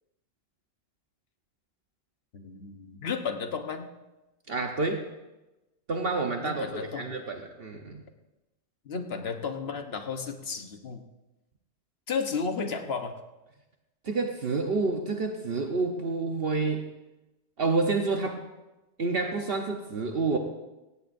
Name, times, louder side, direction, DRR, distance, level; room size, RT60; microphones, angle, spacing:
voice 1, 2.3-3.9 6.4-7.1 8.8-11.0 12.1-13.1, left 5 dB, 60° left, 6 dB, 1.3 m, -33 dB
voice 2, 4.5-5.0 5.9-8.0 14.0-16.8 17.6-18.4 19.0-20.4, right 3 dB, 55° right, 3 dB, 1.2 m, -28 dB
17.0 x 16.5 x 2.6 m, 1.0 s
omnidirectional pair, 1.2 m